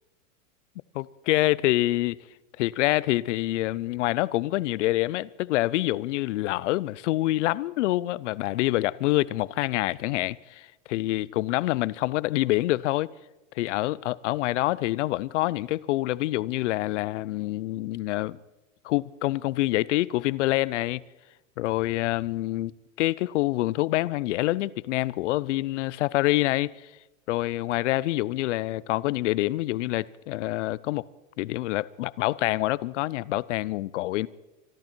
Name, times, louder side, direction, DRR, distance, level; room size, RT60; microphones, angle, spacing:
voice 1, 0.9-2.2 2.6-13.1 13.5-18.4 18.8-21.0 21.6-22.7 23.0-26.9 27.3-31.0 31.4-34.3, left 17 dB, 60° left, 0.6 m, -26 dB
24.5 x 12.5 x 4.5 m
supercardioid pair, 140°, 40 cm